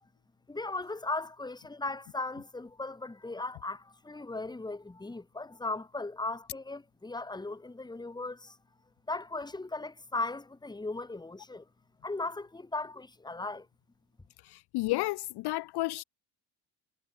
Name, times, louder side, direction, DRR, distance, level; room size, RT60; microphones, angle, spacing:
voice 1, 0.5-8.6 9.1-11.6 12.0-13.7, left 2 dB, 10° left, 1.2 m, -37 dB
voice 2, 14.4-16.0, left 20 dB, 55° left, 0.5 m, -32 dB
hypercardioid pair, 60°, 49 cm